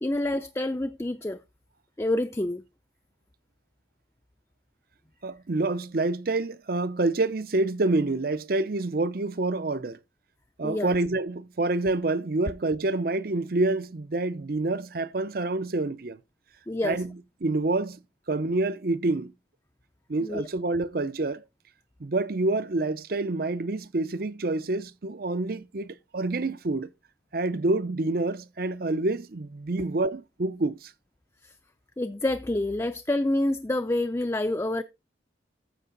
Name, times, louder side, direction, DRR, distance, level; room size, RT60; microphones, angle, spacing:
voice 1, 0.0-1.4 2.0-2.6 10.6-10.9 16.7-17.0 20.2-20.4 31.4-31.5 32.0-34.8, left 1 dB, 15° left, 0.5 m, -27 dB
voice 2, 5.2-10.0 10.6-16.2 16.8-18.0 18.3-19.3 20.1-21.4 22.0-26.9 27.3-30.9, right 2 dB, 50° right, 0.6 m, -27 dB
14.0 x 5.5 x 3.9 m
head